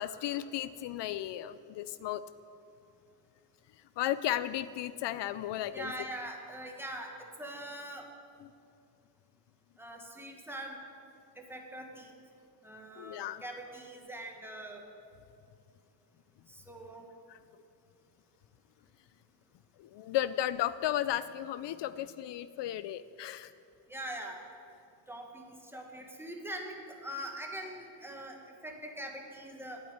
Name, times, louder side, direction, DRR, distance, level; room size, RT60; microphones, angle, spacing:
voice 1, 0.0-2.2 4.0-5.9 13.0-13.4 17.3-17.4 19.8-23.5, left 12 dB, 75° left, 15 dB, 0.5 m, -34 dB
voice 2, 5.7-8.1 9.8-10.8 11.3-12.1 12.6-14.8 16.5-17.1 23.9-24.4 25.1-28.4 28.6-29.8, right 1 dB, 5° right, 1 dB, 1.5 m, -43 dB
11.5 x 8.8 x 9.4 m, 2.6 s
cardioid pair, 150°, 43 cm